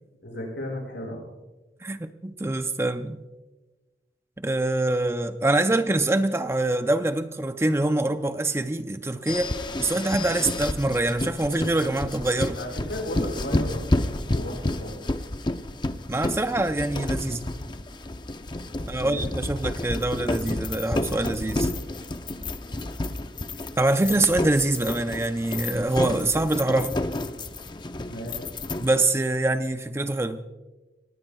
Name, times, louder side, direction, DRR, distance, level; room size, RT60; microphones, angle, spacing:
voice 1, 0.2-1.2 12.5-15.0 18.7-19.3 28.0-28.4, left 1 dB, 85° left, -1 dB, 6.1 m, -35 dB
voice 2, 1.8-3.2 4.4-9.5 9.8-12.6 16.1-17.5 18.9-21.7 23.8-26.9 28.8-30.4, right 2 dB, 15° right, 9 dB, 0.5 m, -25 dB
sound 1, 9.3-29.1, left 1 dB, 25° left, 0.6 m, -30 dB
25.5 x 19.0 x 2.3 m, 1.1 s
head